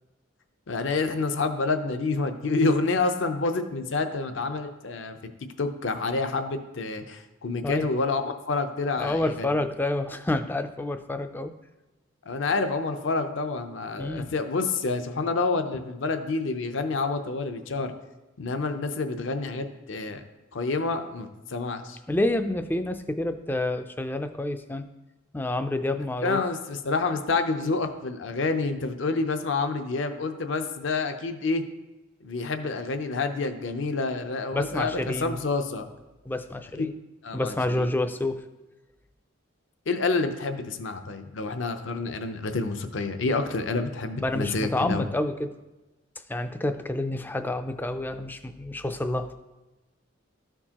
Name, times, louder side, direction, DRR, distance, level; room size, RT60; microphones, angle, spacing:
voice 1, 0.7-5.2 5.6-9.2 12.2-17.9 18.4-20.2 20.5-22.0 26.2-31.6 32.2-35.9 36.8-36.9 37.2-37.9 39.9-45.0, left 3 dB, 65° left, 7 dB, 0.6 m, -28 dB
voice 2, 9.0-11.5 14.0-14.3 22.1-24.8 25.3-26.4 34.5-35.4 36.3-36.9 37.3-38.4 44.2-45.5 46.3-49.3, left 1 dB, 10° left, 9 dB, 0.3 m, -28 dB
13.0 x 4.5 x 2.9 m, 1.1 s
head